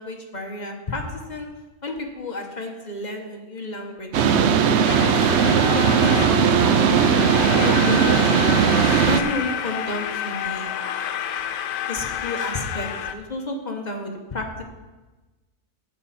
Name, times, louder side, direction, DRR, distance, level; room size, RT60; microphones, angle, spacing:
voice 1, 0.0-1.5 1.8-7.2 7.6-8.4 9.0-10.8 11.9-14.6, left 2 dB, 30° left, 2 dB, 1.1 m, -31 dB
sound 1, 4.1-9.2, right 7 dB, 70° right, 0.6 m, -18 dB
sound 2, 4.9-13.1, left 9 dB, 90° left, 1.3 m, -29 dB
16.0 x 5.5 x 4.2 m, 1.2 s
omnidirectional pair, 1.8 m